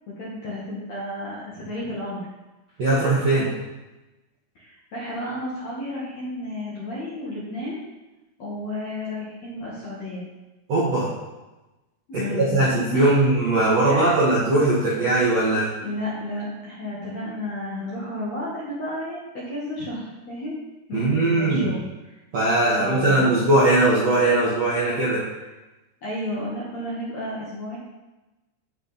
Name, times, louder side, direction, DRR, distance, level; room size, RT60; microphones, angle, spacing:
voice 1, 0.1-2.2 4.6-7.8 8.4-10.3 12.1-12.6 12.9-13.2 13.9-14.2 15.8-20.5 20.9-21.8 22.8-23.4 26.0-27.8, left 1 dB, 55° left, -7 dB, 2.0 m, -32 dB
voice 2, 2.8-3.5 10.7-11.1 12.1-15.7 20.9-21.7 22.3-25.2, right 2 dB, 60° right, -7 dB, 1.8 m, -20 dB
11.0 x 6.5 x 4.2 m, 1.1 s
omnidirectional pair, 5.6 m